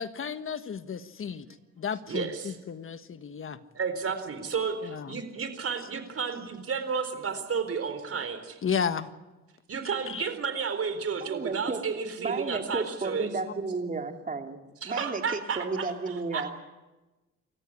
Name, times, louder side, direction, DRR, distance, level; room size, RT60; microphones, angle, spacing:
voice 1, 0.0-1.5 1.8-3.6 4.8-5.2 8.6-9.1 10.1-10.3, left 7 dB, 45° left, 11 dB, 1.5 m, -33 dB
voice 2, 2.1-2.6 3.7-8.6 9.7-13.3 14.8-16.4, right 6 dB, 50° right, 9 dB, 4.2 m, -32 dB
voice 3, 11.2-11.8 12.2-14.6 14.8-16.6, right 3 dB, 25° right, 4 dB, 2.9 m, -33 dB
28.0 x 14.5 x 9.9 m, 1.1 s
cardioid pair, 90°, 30 cm